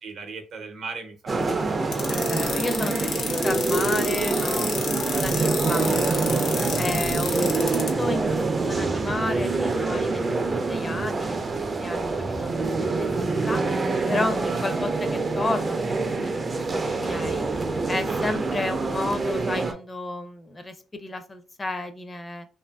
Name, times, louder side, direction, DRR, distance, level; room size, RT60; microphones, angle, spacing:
voice 1, 0.0-1.7 2.1-2.2 14.3-14.6 18.1-18.4, right 4 dB, 65° right, 6 dB, 0.6 m, -39 dB
sound 1, 1.3-19.7, right 3 dB, 30° right, 0.4 m, -26 dB
sound 2, 1.9-7.9, left 6 dB, 75° left, 0.6 m, -30 dB
voice 2, 2.1-6.2 6.7-13.1 13.5-13.6 14.1-16.4 16.7-17.5 17.9-22.5, left 2 dB, 25° left, 8 dB, 0.4 m, -33 dB
2.8 x 2.5 x 2.2 m, 0.34 s
cardioid pair, 90°, 0 cm